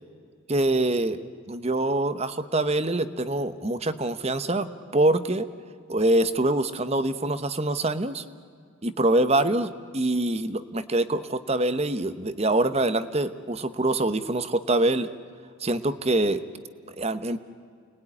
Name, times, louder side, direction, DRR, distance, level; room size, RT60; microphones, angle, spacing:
voice 1, 0.5-1.2 1.5-5.5 5.9-8.2 8.8-15.1 15.6-16.4 17.0-17.4, right 2 dB, 30° right, 12 dB, 1.0 m, -25 dB
29.5 x 20.5 x 9.9 m, 2.2 s
head